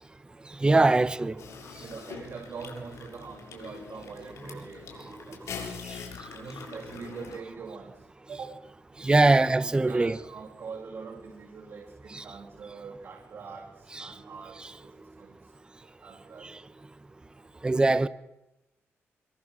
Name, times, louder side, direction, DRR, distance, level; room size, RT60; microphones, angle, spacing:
voice 1, 0.6-1.3 9.0-10.1 12.1-12.2 14.0-14.1 17.6-18.1, right 2 dB, 20° right, 1.2 m, -21 dB
sound 1, 1.4-7.4, left 6 dB, 80° left, 7.1 m, -43 dB
voice 2, 1.8-5.9 6.3-8.6 9.3-16.6, right 5 dB, 60° right, 4.9 m, -44 dB
27.0 x 23.5 x 7.7 m
wide cardioid pair, 150°, 5 cm